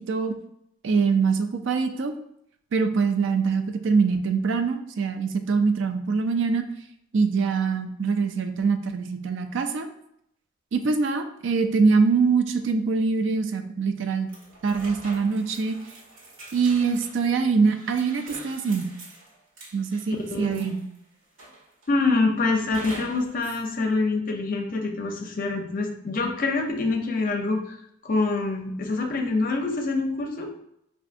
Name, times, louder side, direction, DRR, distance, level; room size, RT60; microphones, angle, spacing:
voice 1, 0.8-2.1 2.7-6.6 7.1-9.9 10.7-14.3 14.6-15.8 16.5-18.9 19.7-20.8, right 4 dB, 65° right, 8 dB, 0.4 m, -23 dB
sound 1, 14.3-21.0 21.4-22.0 22.7-23.7, right 1 dB, 85° right, 1.4 m, -44 dB
voice 2, 20.3-20.7 21.9-27.8 28.0-30.5, left 3 dB, 45° left, 3 dB, 0.5 m, -25 dB
4.6 x 2.5 x 2.5 m, 0.75 s
head